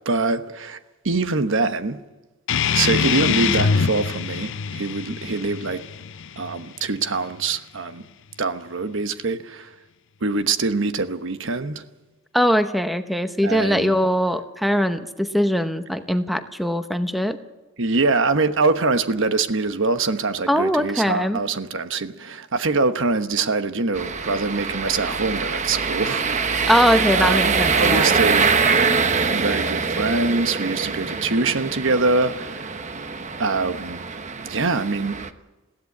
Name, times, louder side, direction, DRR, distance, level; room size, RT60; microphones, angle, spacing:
voice 1, 0.0-0.8 1.0-2.0 2.7-5.8 6.4-8.0 8.4-9.7 10.2-11.8 13.4-14.0 17.8-26.2 27.1-28.5 29.3-32.9 33.4-34.0 34.4-35.2, right 3 dB, 60° right, 1.1 m, -24 dB
sound 1, 2.5-7.5, left 6 dB, 60° left, 0.6 m, -24 dB
voice 2, 12.3-17.4 20.5-21.4 26.7-28.1, equal, ahead, 0.8 m, -21 dB
sound 2, 23.9-35.3, right 5 dB, 35° right, 1.0 m, -24 dB
21.5 x 16.0 x 8.5 m
head